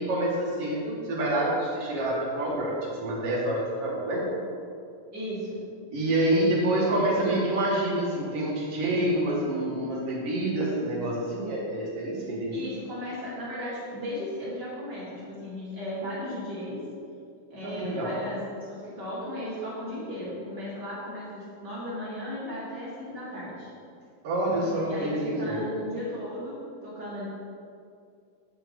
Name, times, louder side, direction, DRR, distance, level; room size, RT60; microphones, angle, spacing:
voice 1, 0.0-4.3 5.9-12.6 17.6-18.1 24.2-25.7, right 1 dB, 50° right, -4 dB, 2.2 m, -27 dB
voice 2, 5.1-5.6 12.5-16.8 17.5-23.7 24.8-27.2, left 1 dB, 35° right, -9 dB, 2.6 m, -36 dB
9.5 x 5.8 x 5.3 m, 2.4 s
omnidirectional pair, 4.1 m